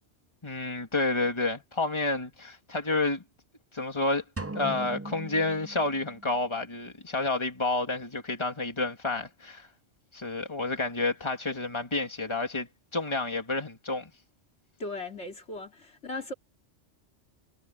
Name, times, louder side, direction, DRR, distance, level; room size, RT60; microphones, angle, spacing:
voice 1, 0.4-3.2 3.7-4.2 4.5-9.7 10.1-14.1, left 2 dB, 25° left, 2.6 m, -30 dB
sound 1, 4.4-6.4, right 2 dB, 15° right, 0.6 m, -39 dB
voice 2, 14.8-16.3, left 2 dB, 65° left, 3.0 m, -37 dB
omnidirectional pair, 1.2 m